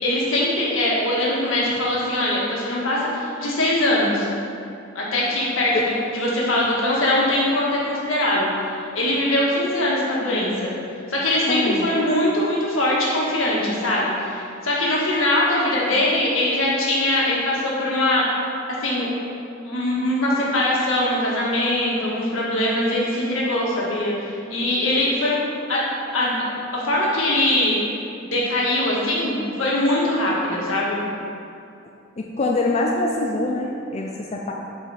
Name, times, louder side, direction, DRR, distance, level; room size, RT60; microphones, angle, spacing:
voice 1, 0.0-4.3 4.9-10.7 11.1-18.2 18.8-19.1 19.6-25.4 25.7-25.8 26.1-26.5 26.7-27.8 28.2-31.0, left 1 dB, 80° left, -5 dB, 1.8 m, -22 dB
voice 2, 11.5-11.9 32.2-34.5, left 2 dB, 35° left, 0 dB, 0.4 m, -24 dB
8.2 x 5.0 x 4.2 m, 2.6 s
head